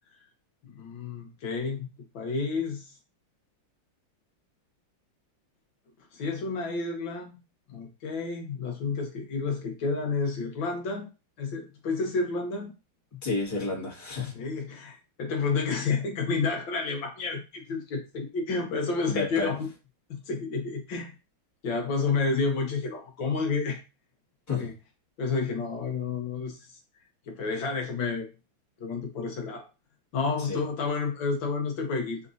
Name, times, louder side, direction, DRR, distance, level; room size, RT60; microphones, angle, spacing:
voice 1, 0.6-1.9 2.1-2.9 6.1-7.3 7.7-11.1 11.4-12.7 14.3-19.7 20.1-21.1 21.6-23.8 24.6-24.7 25.2-26.7 27.3-28.3 28.8-29.7 30.1-32.2, left 4 dB, 75° left, 2 dB, 1.6 m, -30 dB
voice 2, 13.1-14.3 19.1-19.6 24.5-24.7 30.5-30.6, left 3 dB, 10° left, -4 dB, 1.4 m, -30 dB
5.0 x 3.0 x 2.6 m, 0.29 s
omnidirectional pair, 2.1 m